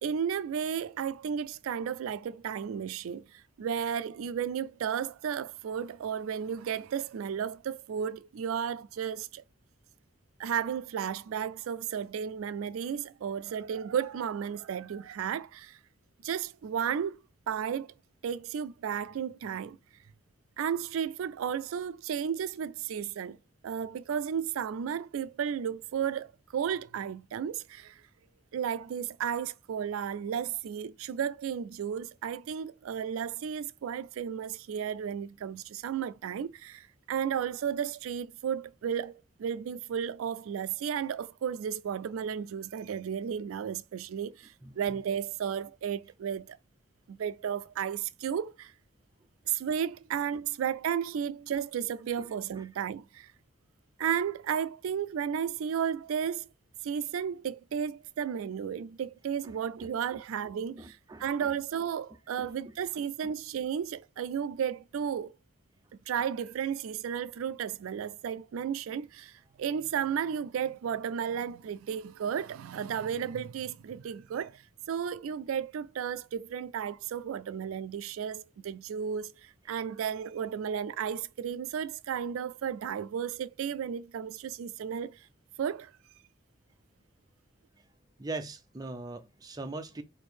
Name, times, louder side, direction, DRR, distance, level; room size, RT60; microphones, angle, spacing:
voice 1, 0.0-9.4 10.4-15.8 16.2-17.2 17.5-17.9 18.2-19.8 20.6-23.4 23.6-28.0 28.5-46.6 47.1-48.7 49.5-53.3 54.0-56.5 56.8-65.4 66.1-74.6 74.9-85.2 85.6-85.9, right 8 dB, 85° right, 0.3 m, -33 dB
voice 2, 60.8-61.3 62.4-62.5 63.2-63.3 88.2-90.0, right 3 dB, 20° right, 0.5 m, -40 dB
4.3 x 2.6 x 4.3 m
head